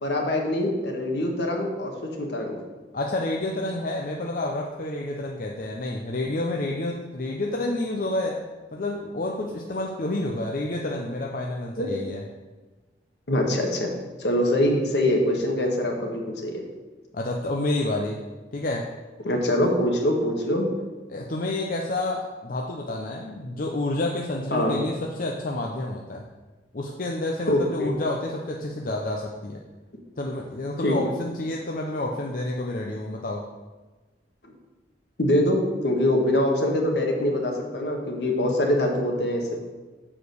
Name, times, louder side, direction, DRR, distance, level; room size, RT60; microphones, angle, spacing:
voice 1, 0.0-2.6 11.8-11.9 13.3-13.9 14.2-16.6 19.2-20.7 24.5-24.8 27.5-27.9 30.8-31.1 35.2-39.6, left 1 dB, 70° left, 2 dB, 1.5 m, -24 dB
voice 2, 2.9-8.4 8.7-12.2 17.1-18.2 18.5-18.9 21.1-26.2 26.7-29.6 30.2-33.5, left 2 dB, 50° left, -1 dB, 0.7 m, -29 dB
7.3 x 4.9 x 6.4 m, 1.3 s
head